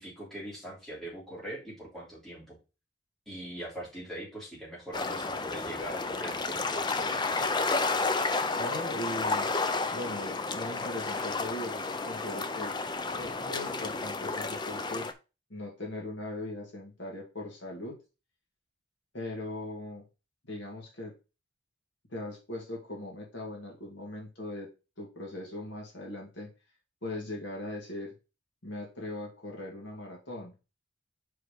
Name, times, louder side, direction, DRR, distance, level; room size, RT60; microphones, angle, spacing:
voice 1, 0.0-2.6 3.3-7.5, right 1 dB, ahead, -7 dB, 3.1 m, -42 dB
sound 1, 4.9-15.1, left 3 dB, 20° left, 0.5 m, -31 dB
voice 2, 8.6-9.5 9.9-12.7 13.1-15.1 15.5-18.0 19.1-20.0 20.4-21.1 22.1-24.7 25.0-26.5 27.0-28.1 28.6-30.5, left 1 dB, 60° left, -2 dB, 2.2 m, -39 dB
4.9 x 4.8 x 5.1 m, 0.30 s
head